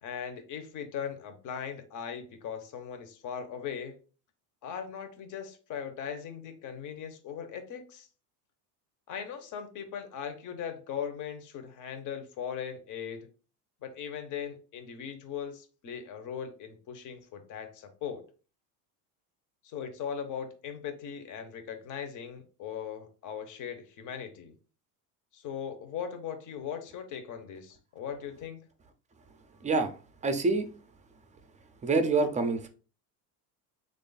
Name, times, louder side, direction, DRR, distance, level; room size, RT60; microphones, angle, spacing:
voice 1, 0.0-4.0 4.6-8.1 9.1-13.3 13.8-18.3 19.6-24.5 25.3-28.7, left 8 dB, 40° left, 7 dB, 0.8 m, -39 dB
voice 2, 29.6-29.9 30.2-30.7 31.8-32.7, right 3 dB, 15° right, 8 dB, 0.4 m, -26 dB
3.1 x 2.5 x 3.9 m, 0.37 s
supercardioid pair, 105°, 45 cm